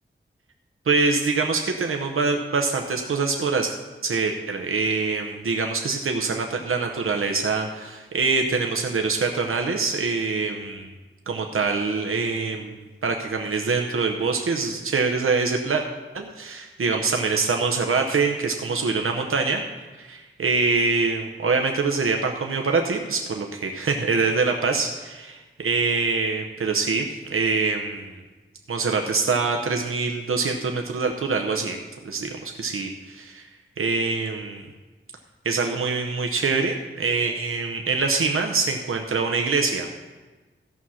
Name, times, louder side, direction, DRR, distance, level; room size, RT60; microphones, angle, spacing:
voice 1, 0.9-3.7 4.0-10.9 11.3-12.8 13.0-15.8 16.1-19.6 20.0-28.2 28.7-31.8 32.0-33.5 33.8-34.6 35.4-39.9, right 4 dB, 90° right, 3 dB, 0.8 m, -24 dB
14.0 x 5.7 x 6.2 m, 1.2 s
wide cardioid pair, 70°, 21 cm